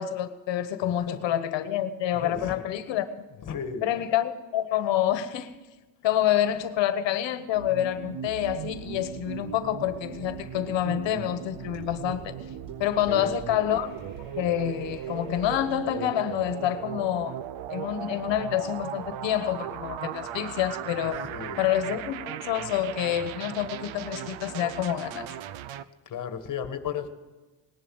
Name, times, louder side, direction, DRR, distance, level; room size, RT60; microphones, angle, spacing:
voice 1, 0.0-3.1 3.8-5.6 6.0-12.4 12.8-13.9 14.4-17.4 17.7-21.2 21.6-25.3, left 11 dB, 65° left, 1.3 m, -27 dB
voice 2, 2.1-2.5 3.4-3.9 13.1-13.4 21.3-21.6 26.0-27.1, left 7 dB, 40° left, 1.7 m, -34 dB
sound 1, 7.5-25.8, right 10 dB, 80° right, 0.9 m, -38 dB
sound 2, 8.5-15.6, right 3 dB, 45° right, 4.6 m, -49 dB
19.5 x 11.0 x 6.4 m
cardioid pair, 155°, 47 cm